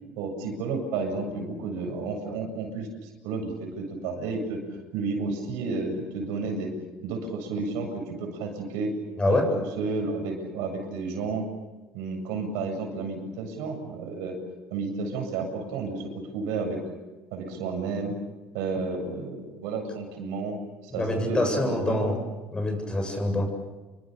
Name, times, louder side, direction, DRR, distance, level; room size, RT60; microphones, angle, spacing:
voice 1, 0.2-4.6 4.9-6.7 7.0-8.9 9.3-11.5 11.9-14.4 14.7-16.8 17.3-18.1 18.5-20.6 20.8-22.2, right 4 dB, 85° right, 4 dB, 7.9 m, -31 dB
voice 2, 9.2-9.5 20.9-22.2 22.5-23.5, left 1 dB, 15° left, 4 dB, 7.9 m, -25 dB
29.5 x 24.0 x 6.9 m, 1.2 s
cardioid pair, 115°, 5 cm